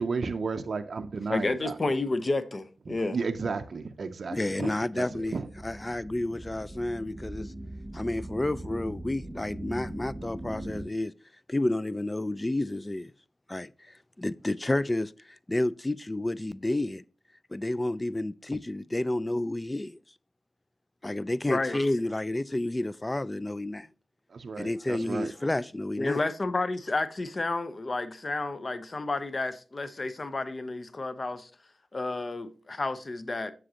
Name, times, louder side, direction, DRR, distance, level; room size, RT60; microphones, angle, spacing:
voice 1, 0.0-1.8 2.9-5.5 24.3-25.3, right 4 dB, 65° right, 0.5 m, -33 dB
voice 2, 1.3-3.2 7.9-8.0 21.5-21.8 26.0-31.5 31.9-33.5, left 2 dB, 45° left, 0.7 m, -31 dB
voice 3, 4.3-5.4 5.6-7.5 7.9-11.1 11.5-13.1 13.5-13.7 14.2-17.0 17.5-20.0 21.0-23.9 24.6-26.2, left 1 dB, 20° left, 0.3 m, -30 dB
sound 1, 5.1-10.9, right 1 dB, 15° right, 1.2 m, -41 dB
7.6 x 6.2 x 2.8 m
cardioid pair, 55°, 0 cm